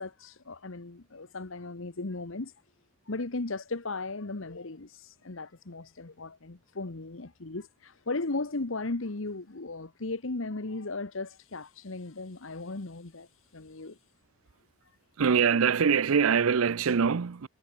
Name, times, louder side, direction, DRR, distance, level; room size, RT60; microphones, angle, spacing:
voice 1, 0.0-2.5 3.1-14.0, left 3 dB, 65° left, 1.2 m, -36 dB
voice 2, 15.2-17.5, right 6 dB, 75° right, 0.5 m, -24 dB
head